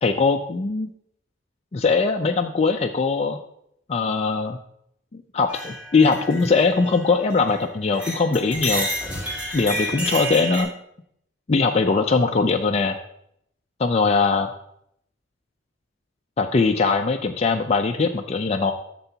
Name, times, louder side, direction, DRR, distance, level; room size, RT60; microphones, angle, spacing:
voice 1, 0.0-0.9 1.7-3.4 3.9-4.6 5.1-8.9 9.5-10.7 11.5-13.0 13.8-14.5 16.4-18.7, left 4 dB, 30° left, 3 dB, 0.4 m, -21 dB
sound 1, 5.5-7.6 7.9-10.6, right 1 dB, 5° right, 1.9 m, -30 dB
11.5 x 6.8 x 2.8 m, 0.73 s
head